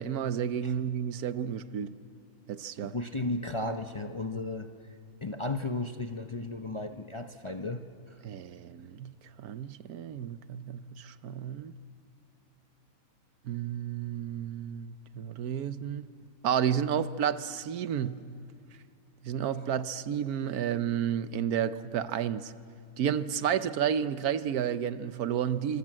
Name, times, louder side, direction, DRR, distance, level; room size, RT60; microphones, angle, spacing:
voice 1, 0.0-2.0 2.5-2.9 8.2-11.7 13.4-16.1 16.4-18.3 19.2-22.5 23.0-25.8, right 9 dB, 80° right, 1.3 m, -31 dB
voice 2, 2.9-4.7 5.2-8.2, left 2 dB, 25° left, 0.7 m, -34 dB
26.5 x 25.5 x 7.6 m
omnidirectional pair, 1.6 m